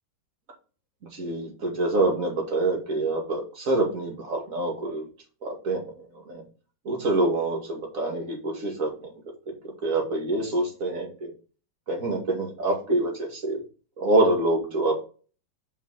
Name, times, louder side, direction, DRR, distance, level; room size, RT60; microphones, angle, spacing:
voice 1, 1.1-5.1 5.4-5.8 6.3-6.4 6.8-9.1 9.6-11.3 11.9-13.6 14.0-15.0, right 2 dB, 40° right, 0 dB, 2.4 m, -26 dB
5.4 x 5.4 x 6.0 m, 0.36 s
omnidirectional pair, 2.2 m